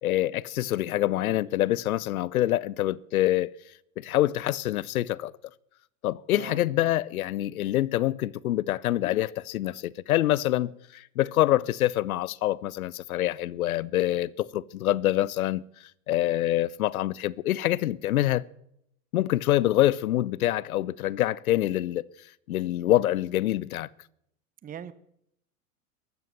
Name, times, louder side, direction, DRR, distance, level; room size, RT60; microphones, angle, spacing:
voice 1, 0.0-3.5 4.0-5.3 6.0-15.6 16.1-18.4 19.1-22.0 22.5-23.9, left 14 dB, 75° left, 0.8 m, -26 dB
voice 2, 6.3-6.9 24.6-24.9, right 9 dB, 20° right, 0.9 m, -42 dB
14.0 x 12.0 x 7.5 m
hypercardioid pair, 95°, 43 cm